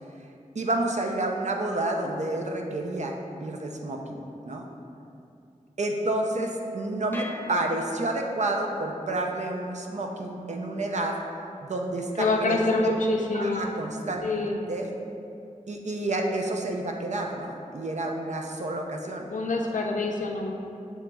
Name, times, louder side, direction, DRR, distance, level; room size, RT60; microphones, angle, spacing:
voice 1, 0.5-3.1 3.4-4.7 5.8-11.2 11.6-13.0 13.3-14.2 14.7-14.9 15.7-19.3, right 2 dB, 65° right, 1 dB, 0.5 m, -29 dB
sound 1, 7.1-8.5, left 1 dB, 15° left, 0.3 m, -43 dB
voice 2, 12.2-13.7 14.2-14.6 19.3-20.5, left 3 dB, 80° left, 1 dB, 0.5 m, -26 dB
7.2 x 2.9 x 2.2 m, 2.5 s
wide cardioid pair, 80°, 13 cm